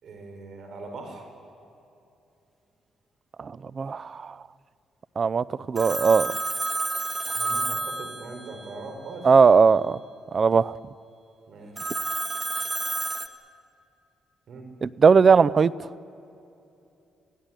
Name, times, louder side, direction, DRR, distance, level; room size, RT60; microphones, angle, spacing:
voice 1, 0.0-1.3 7.3-9.3 11.5-12.0 14.5-14.7, right 3 dB, 60° right, 4 dB, 5.1 m, -41 dB
voice 2, 3.4-4.3 5.2-6.3 9.2-10.0 10.3-10.8 14.8-15.9, right 5 dB, 40° right, 20 dB, 0.5 m, -19 dB
Telephone, 5.8-8.8 11.8-13.3, right 2 dB, 20° right, 1.5 m, -30 dB
26.0 x 16.0 x 9.1 m, 2.8 s
cardioid pair, 90°, 0 cm